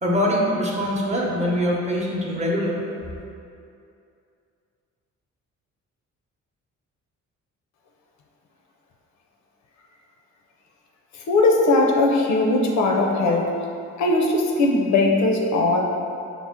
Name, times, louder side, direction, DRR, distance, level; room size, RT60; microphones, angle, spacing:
voice 1, 0.0-2.8, equal, 25° right, -3 dB, 0.7 m, -23 dB
voice 2, 11.3-13.5 14.0-15.8, left 2 dB, 65° left, 1 dB, 0.6 m, -19 dB
5.7 x 2.0 x 3.6 m, 2.5 s
cardioid pair, 90°, 30 cm